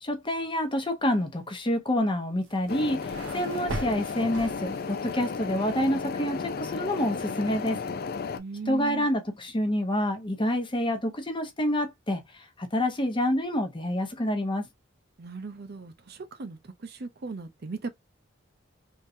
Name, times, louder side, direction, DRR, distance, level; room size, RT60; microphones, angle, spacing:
voice 1, 0.0-7.8 8.7-12.2 12.6-14.7, left 1 dB, 25° left, 0.8 m, -27 dB
sound 1, 2.4-5.1, right 2 dB, 70° right, 1.0 m, -39 dB
sound 2, 2.7-8.4, left 5 dB, 50° left, 0.4 m, -34 dB
voice 2, 8.3-9.1 15.2-17.9, right 4 dB, 50° right, 0.6 m, -38 dB
3.6 x 2.8 x 2.6 m
head